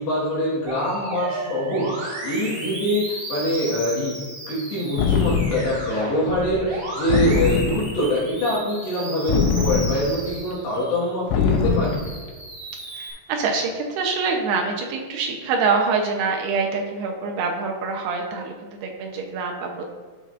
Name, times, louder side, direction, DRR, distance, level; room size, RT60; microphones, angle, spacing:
voice 1, 0.0-11.9, equal, 75° left, -7 dB, 3.7 m, -24 dB
Musical instrument, 0.7-11.1 11.5-13.1, right 1 dB, 35° right, 2.1 m, -34 dB
sound 1, 5.0-5.9 7.1-8.1 9.3-10.3 11.3-12.2, left 5 dB, 90° left, 3.1 m, -22 dB
voice 2, 12.9-19.7, right 4 dB, 75° right, 1 dB, 2.6 m, -25 dB
12.0 x 6.3 x 2.5 m, 1.4 s
omnidirectional pair, 5.1 m